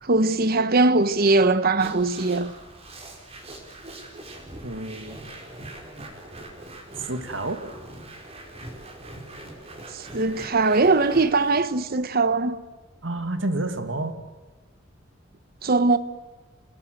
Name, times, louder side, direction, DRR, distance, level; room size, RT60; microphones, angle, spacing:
voice 1, 0.0-2.5 9.9-12.6 15.6-16.0, right 3 dB, 50° right, 1.1 m, -21 dB
sound 1, 1.8-11.6, right 1 dB, 35° right, 4.7 m, -42 dB
voice 2, 4.6-5.2 7.1-7.7 13.0-14.3, right 2 dB, 80° right, 2.4 m, -29 dB
28.0 x 18.5 x 7.9 m
head